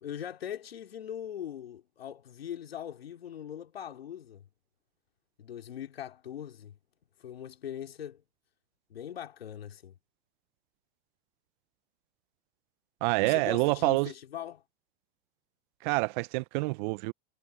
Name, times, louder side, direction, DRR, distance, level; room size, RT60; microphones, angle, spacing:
voice 1, 0.0-4.4 5.4-6.8 7.2-8.2 8.9-9.9 13.2-14.6, left 10 dB, 85° left, 2.7 m, -41 dB
voice 2, 13.0-14.1 15.8-17.1, right 26 dB, 55° right, 0.6 m, -27 dB
hypercardioid pair, 100°, 29 cm